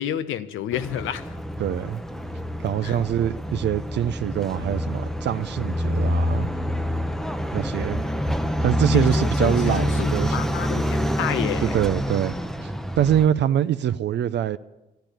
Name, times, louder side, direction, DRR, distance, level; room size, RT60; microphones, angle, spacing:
voice 1, 0.0-1.4 2.8-3.0 8.9-11.7, left 10 dB, 85° left, 0.9 m, -30 dB
sound 1, 0.7-13.3, equal, ahead, 0.8 m, -27 dB
voice 2, 1.6-2.0 2.6-6.5 7.5-8.0 8.6-10.5 11.6-14.6, right 10 dB, 60° right, 0.5 m, -24 dB
13.5 x 10.5 x 9.2 m
cardioid pair, 90°, 20 cm